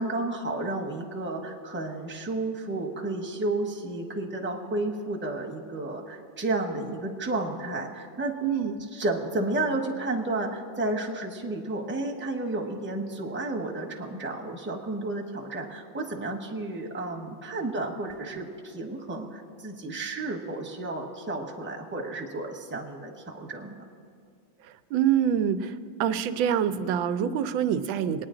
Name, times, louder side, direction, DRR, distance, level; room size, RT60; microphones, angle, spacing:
voice 1, 0.0-8.3 8.9-23.9 27.2-27.4, right 2 dB, 10° right, 1 dB, 0.7 m, -32 dB
voice 2, 8.4-8.8 24.9-25.7 26.0-28.3, right 9 dB, 90° right, 11 dB, 1.4 m, -25 dB
22.0 x 9.7 x 3.8 m, 2.3 s
omnidirectional pair, 2.1 m